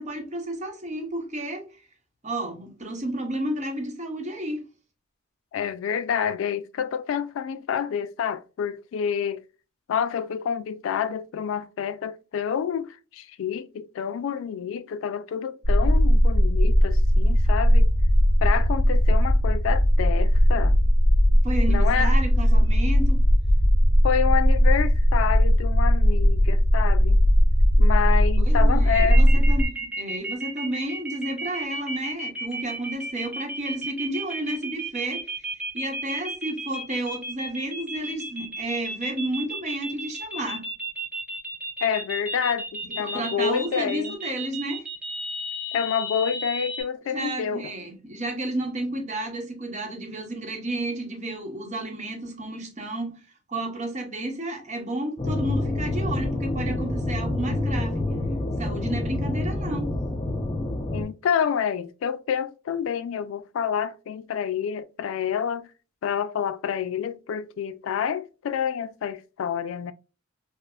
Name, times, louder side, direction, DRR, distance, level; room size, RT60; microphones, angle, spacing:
voice 1, 0.0-1.7 2.2-4.6 21.4-23.2 28.5-35.3 35.7-40.7 42.9-44.8 47.1-53.2 53.5-58.0 58.6-59.9, right 1 dB, 35° right, 0.8 m, -31 dB
voice 2, 5.5-9.4 9.9-17.9 18.4-20.7 21.7-22.1 24.0-27.2 27.8-29.2 41.8-44.2 45.7-47.7 60.9-65.7 66.0-69.9, left 7 dB, 80° left, 0.3 m, -28 dB
sound 1, 15.6-29.7, equal, 65° left, 1.5 m, -18 dB
sound 2, 28.9-46.8, right 1 dB, 10° right, 0.8 m, -33 dB
sound 3, 55.2-61.0, left 2 dB, 25° left, 0.5 m, -27 dB
4.8 x 2.0 x 2.3 m
head